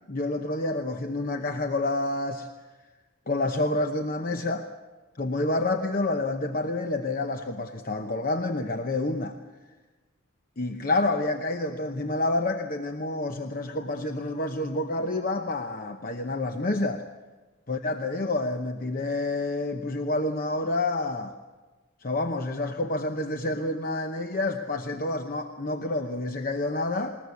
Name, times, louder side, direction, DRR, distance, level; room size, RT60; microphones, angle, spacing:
voice 1, 0.1-2.5 3.3-4.7 5.2-9.4 10.6-17.0 17.7-21.4 22.0-27.2, left 2 dB, 40° left, 6 dB, 0.9 m, -28 dB
20.5 x 20.0 x 8.4 m, 1.3 s
head